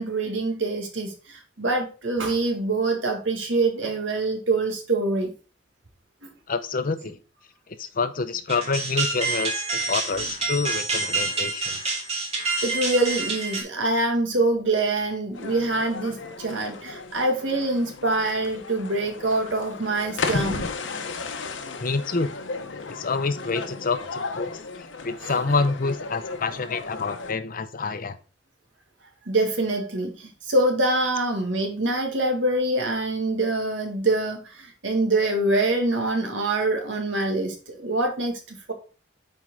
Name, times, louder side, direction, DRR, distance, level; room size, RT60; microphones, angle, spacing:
voice 1, 0.0-5.3 12.6-20.7 25.2-25.5 29.3-38.7, right 2 dB, 75° right, 3 dB, 1.9 m, -25 dB
voice 2, 6.5-7.2 7.8-12.0 21.8-22.3 22.9-24.5 25.0-28.2, left 4 dB, 45° left, 11 dB, 0.7 m, -27 dB
sound 1, 8.5-13.6, right 3 dB, 35° right, 2.1 m, -27 dB
sound 2, 15.3-27.3, left 4 dB, 75° left, 0.9 m, -34 dB
7.5 x 4.6 x 3.7 m, 0.35 s
head